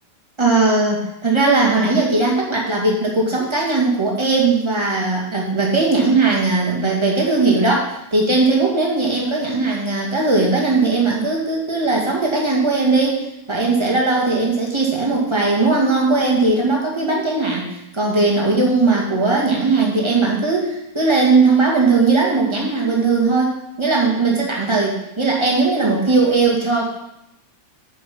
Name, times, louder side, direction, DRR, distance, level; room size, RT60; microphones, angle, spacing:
voice 1, 0.4-17.7 17.9-27.0, right 3 dB, 15° right, -2 dB, 1.3 m, -18 dB
9.3 x 5.4 x 6.0 m, 0.84 s
omnidirectional pair, 3.5 m